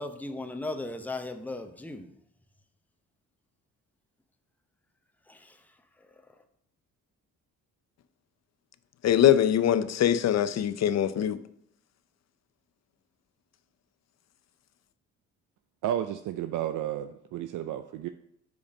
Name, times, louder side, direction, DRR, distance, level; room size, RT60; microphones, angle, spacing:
voice 1, 0.0-2.1 5.3-5.6 6.0-6.1, left 2 dB, 5° left, 6 dB, 0.8 m, -37 dB
voice 2, 9.0-11.4, left 10 dB, 50° left, 13 dB, 0.6 m, -23 dB
voice 3, 15.8-18.1, right 11 dB, 65° right, 9 dB, 0.5 m, -32 dB
5.2 x 4.9 x 6.2 m, 0.73 s
cardioid pair, 75°, 33 cm